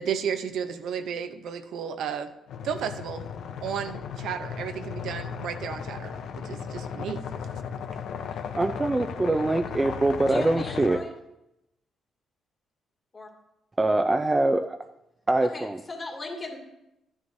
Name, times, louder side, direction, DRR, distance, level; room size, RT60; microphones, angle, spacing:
voice 1, 0.0-2.3 2.6-3.3 3.6-7.3, right 7 dB, 75° right, 8 dB, 0.7 m, -33 dB
sound 1, 2.5-11.0, left 7 dB, 75° left, 0.7 m, -36 dB
voice 2, 8.5-11.0 13.8-14.8 15.3-15.8, right 2 dB, 20° right, 6 dB, 0.5 m, -24 dB
voice 3, 10.3-11.1 13.1-13.3 15.4-16.6, left 2 dB, 30° left, 1 dB, 2.4 m, -37 dB
12.5 x 9.7 x 2.7 m, 0.87 s
cardioid pair, 90°, 0 cm